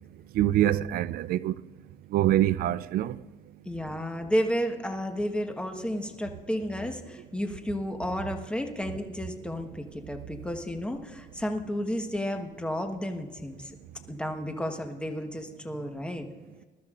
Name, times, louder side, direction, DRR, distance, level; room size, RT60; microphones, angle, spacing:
voice 1, 0.3-1.5 2.1-3.2, right 13 dB, 60° right, 0.4 m, -24 dB
voice 2, 3.6-13.7 14.1-16.3, equal, 5° left, 1.2 m, -32 dB
21.0 x 12.5 x 2.5 m
cardioid pair, 110°, 17 cm